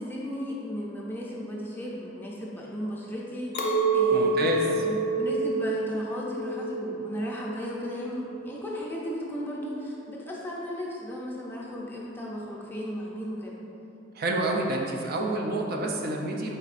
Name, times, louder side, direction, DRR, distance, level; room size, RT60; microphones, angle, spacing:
voice 1, 0.0-13.6, equal, 10° left, -4 dB, 0.5 m, -35 dB
Chink clink, 3.5-8.9, right 3 dB, 65° left, 0.5 m, -28 dB
voice 2, 4.1-4.8 14.2-16.6, right 2 dB, 55° right, 0 dB, 0.4 m, -28 dB
4.3 x 3.9 x 2.4 m, 2.8 s
head